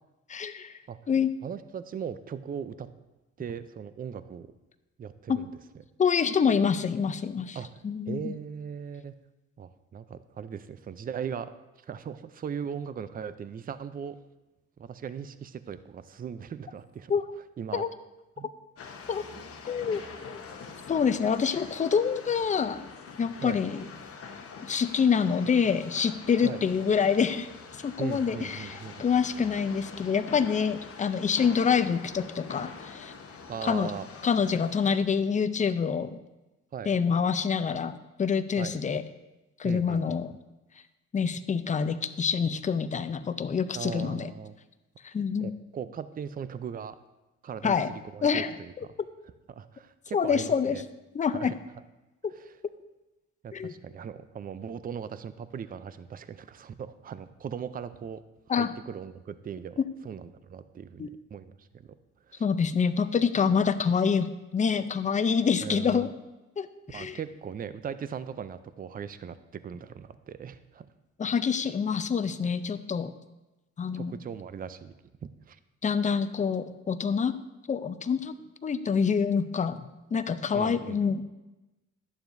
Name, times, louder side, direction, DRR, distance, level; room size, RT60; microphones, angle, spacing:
voice 1, 0.3-0.8 1.1-1.3 5.3-5.4 6.0-7.6 7.8-8.3 17.1-17.2 17.7-17.9 19.1-19.2 19.7-20.4 20.9-22.9 23.2-23.8 24.6-27.5 27.8-33.1 33.6-33.9 34.2-36.2 36.9-39.0 39.6-40.3 41.1-44.3 45.0-45.5 47.6-47.9 48.2-48.5 50.1-50.8 51.1-51.5 52.2-52.3 53.5-53.7 58.5-58.7 61.0-61.1 62.4-66.1 66.6-67.2 71.2-73.1 73.8-74.1 75.8-77.3 77.7-78.3 78.6-79.8 80.1-81.2, left 6 dB, 25° left, 12 dB, 0.5 m, -26 dB
voice 2, 1.4-2.9 3.4-4.5 5.0-5.5 7.5-9.1 9.6-11.5 11.8-14.2 14.8-17.1 17.6-17.8 18.4-18.5 19.3-19.5 23.4-23.6 26.4-26.6 28.0-29.0 33.5-34.1 36.7-36.9 38.6-38.8 39.6-40.2 43.8-44.5 45.4-47.0 47.4-48.9 49.5-50.8 51.3-51.6 52.4-52.5 53.4-58.2 58.5-59.8 60.0-62.0 62.3-62.4 65.6-66.1 66.9-70.9 73.9-74.9 75.5-75.6 80.5-81.0, right 7 dB, 30° right, 13 dB, 0.4 m, -39 dB
sound 1, 18.8-35.0, left 5 dB, 50° left, 0.9 m, -44 dB
11.0 x 7.0 x 2.6 m, 1.0 s
cardioid pair, 90°, 30 cm